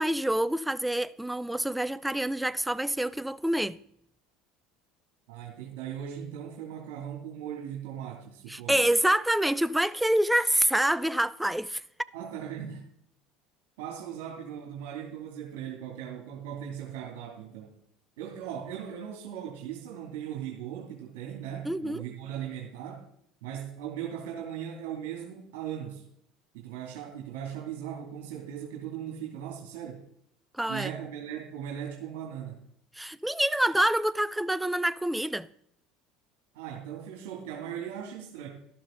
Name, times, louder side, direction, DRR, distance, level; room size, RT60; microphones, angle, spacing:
voice 1, 0.0-3.8 8.5-11.8 21.7-22.0 30.6-30.9 33.0-35.5, right 1 dB, 5° right, 0.6 m, -26 dB
voice 2, 5.3-8.8 12.1-12.8 13.8-17.7 18.2-23.0 23.4-26.0 26.5-30.0 30.7-32.6 36.5-38.5, right 9 dB, 75° right, 2.7 m, -38 dB
13.0 x 12.0 x 3.9 m
hypercardioid pair, 85°, 0 cm